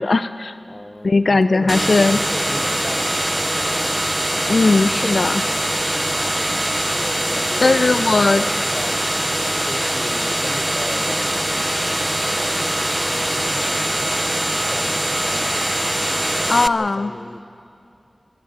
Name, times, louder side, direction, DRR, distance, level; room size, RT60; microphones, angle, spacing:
voice 1, 0.0-0.5 1.0-2.2 4.5-5.4 7.6-8.4 16.5-17.1, left 3 dB, 75° left, 12 dB, 0.5 m, -17 dB
voice 2, 0.7-3.7 7.0-9.3 9.7-11.6 12.1-15.7 16.1-17.4, left 1 dB, 30° left, 11 dB, 0.9 m, -36 dB
sound 1, 1.7-16.7, right 1 dB, 15° right, 0.6 m, -22 dB
26.0 x 12.0 x 9.8 m, 2.6 s
wide cardioid pair, 75°, 0 cm